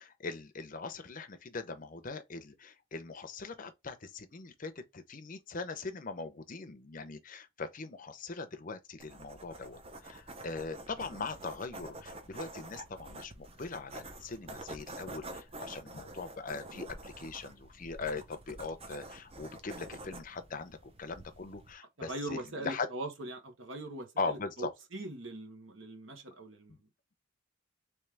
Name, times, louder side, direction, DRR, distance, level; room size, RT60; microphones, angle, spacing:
voice 1, 0.0-22.9 24.2-24.7 26.7-26.8, left 4 dB, 40° left, 0.6 m, -41 dB
sound 1, 9.0-21.7, right 2 dB, 30° right, 0.6 m, -48 dB
voice 2, 22.0-26.8, right 1 dB, 60° right, 1.2 m, -41 dB
3.3 x 3.2 x 3.4 m
head